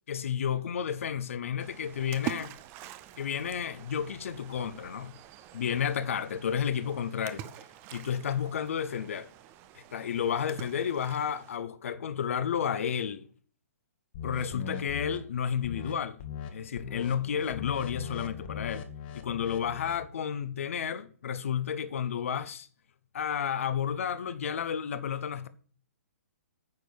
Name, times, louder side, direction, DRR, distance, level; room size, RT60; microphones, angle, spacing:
voice 1, 0.1-2.5 3.2-5.1 5.5-7.5 7.9-9.3 9.7-13.3 14.2-16.2 16.5-18.9 19.1-22.7 23.1-25.5, left 8 dB, 60° left, 1.0 m, -31 dB
Splash splatter, 1.6-11.6, right 13 dB, 25° right, 0.7 m, -45 dB
sound 1, 14.1-15.2 15.6-15.9 16.2-16.5 16.8-20.1, left 7 dB, 40° left, 1.4 m, -40 dB
9.6 x 4.6 x 7.0 m
figure-of-eight pair, 130°, 8 cm